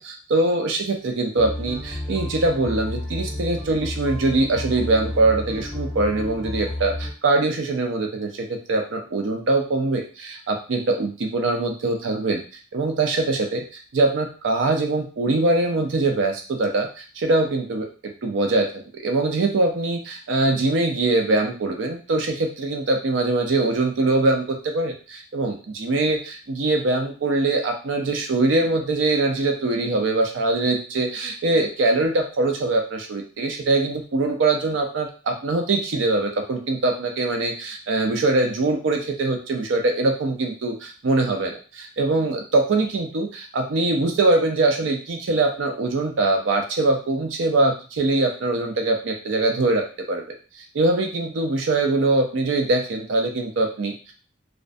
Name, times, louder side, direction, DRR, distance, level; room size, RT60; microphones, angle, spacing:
voice 1, 0.0-12.4 12.7-17.9 18.2-41.5 42.0-50.2 50.7-54.1, right 2 dB, 75° right, 3 dB, 0.5 m, -22 dB
sound 1, 1.4-7.1, left 1 dB, 10° left, 0.7 m, -31 dB
2.5 x 2.1 x 2.5 m, 0.36 s
head